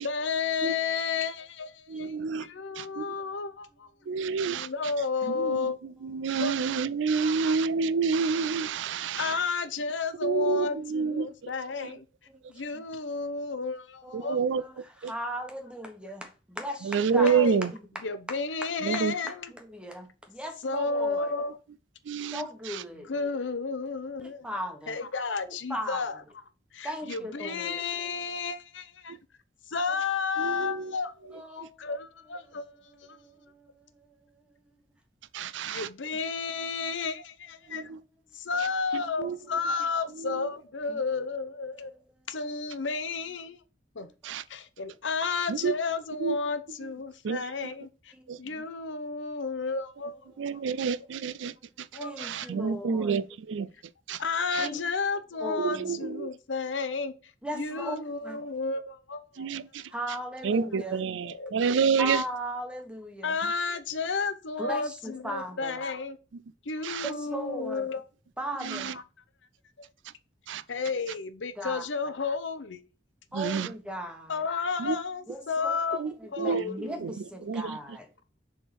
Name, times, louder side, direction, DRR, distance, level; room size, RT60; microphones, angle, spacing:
voice 1, 0.0-2.1 2.4-3.9 4.4-5.8 6.4-6.6 7.2-7.5 9.1-12.0 12.5-14.4 17.2-17.7 18.0-19.5 20.6-21.6 23.1-24.5 24.9-26.2 26.7-29.2 29.7-33.2 35.7-37.9 38.3-41.9 42.3-43.6 43.9-44.1 44.5-48.1 48.4-50.3 52.0-52.5 54.2-57.1 57.5-59.5 61.3-61.9 63.2-66.2 66.6-68.0 68.9-69.0 70.7-72.8 74.3-76.0 76.3-77.1, left 4 dB, 85° left, 0.8 m, -32 dB
voice 2, 1.9-2.5 2.8-3.1 4.1-4.7 5.3-5.7 6.0-9.4 10.2-11.3 11.8-11.9 14.1-14.6 15.0-15.1 16.8-17.7 18.8-19.1 22.1-22.8 30.4-30.9 35.3-35.9 37.7-38.0 38.9-39.4 40.2-40.5 44.2-44.4 45.5-45.8 46.2-46.4 47.2-47.4 48.3-48.4 50.4-51.5 52.2-53.7 54.1-54.2 54.5-54.7 55.6-56.3 59.4-59.8 60.4-62.2 66.8-67.1 68.6-68.9 70.5-70.6 73.3-73.7 74.8-75.0 76.0-77.1 77.5-77.8, right 5 dB, 85° right, 0.4 m, -28 dB
voice 3, 14.0-17.8 18.9-21.3 22.3-23.1 24.2-25.0 25.5-26.0 26.8-27.8 31.3-31.8 32.4-34.4 37.6-37.8 38.3-38.7 40.9-41.0 41.7-41.9 48.1-48.6 50.3-51.0 51.9-53.2 54.6-54.9 55.4-55.9 57.4-58.6 59.9-61.1 62.0-63.4 64.6-65.8 67.0-67.9 68.4-68.9 71.6-71.8 73.3-74.4 75.3-78.1, equal, 5° right, 1.3 m, -38 dB
6.9 x 3.7 x 4.3 m
head